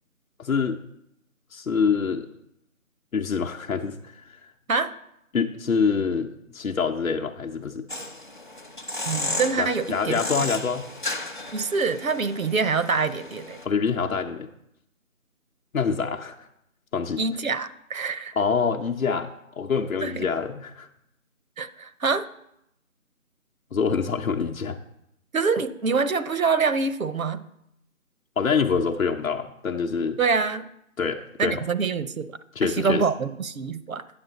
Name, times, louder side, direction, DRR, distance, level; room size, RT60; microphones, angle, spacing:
voice 1, 0.4-0.8 1.5-2.3 3.1-4.5 5.3-7.8 9.6-10.9 13.6-14.5 15.7-16.5 16.9-17.2 18.4-20.9 23.7-24.8 28.4-30.2 31.0-31.6 32.6-33.0, left 5 dB, 70° left, 3 dB, 0.8 m, -26 dB
sound 1, 7.9-13.7, left 2 dB, 35° left, 0.7 m, -34 dB
voice 2, 9.1-10.2 11.5-13.6 17.2-18.3 20.0-20.3 21.6-22.3 25.3-27.5 30.2-30.7 31.4-34.0, right 5 dB, 70° right, 13 dB, 0.7 m, -25 dB
8.8 x 7.4 x 4.0 m, 0.79 s
figure-of-eight pair, 165°, 42 cm